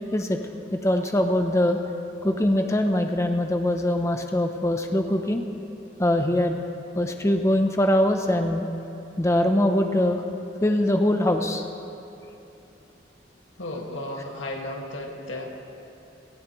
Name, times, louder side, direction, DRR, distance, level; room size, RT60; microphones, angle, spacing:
voice 1, 0.7-1.8 2.2-5.4 6.0-6.6 6.9-8.7 9.2-10.2 10.6-11.6, left 1 dB, 15° left, 5 dB, 0.5 m, -22 dB
voice 2, 13.6-15.4, left 1 dB, 90° left, 0 dB, 1.8 m, -34 dB
18.0 x 16.0 x 3.0 m, 2.9 s
head